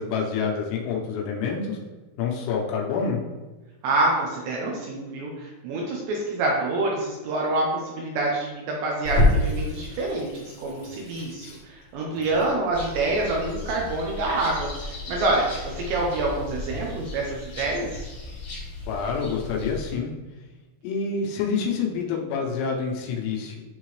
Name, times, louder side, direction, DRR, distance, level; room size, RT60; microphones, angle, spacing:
voice 1, 0.0-1.8 2.2-3.2 18.9-20.1 20.8-23.6, left 5 dB, 85° left, -1 dB, 3.6 m, -27 dB
voice 2, 3.8-18.0, right 2 dB, 75° right, -2 dB, 2.8 m, -27 dB
Water tap faucet / Sink (filling or washing), 9.1-18.0, left 2 dB, 65° left, 3.5 m, -29 dB
sound 1, 12.7-19.9, left 2 dB, 40° left, 1.9 m, -37 dB
11.0 x 3.7 x 3.2 m, 1.2 s
omnidirectional pair, 5.7 m